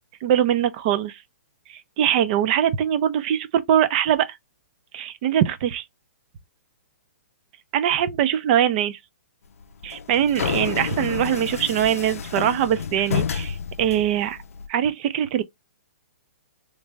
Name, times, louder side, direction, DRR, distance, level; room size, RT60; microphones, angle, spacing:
voice 1, 0.2-1.2 1.7-4.4 4.9-5.8 7.7-9.0 9.8-14.4 14.7-15.4, right 10 dB, 40° right, 0.5 m, -22 dB
sound 1, 9.6-14.7, left 7 dB, 80° left, 0.5 m, -30 dB
3.2 x 2.5 x 3.2 m
hypercardioid pair, 145°, 8 cm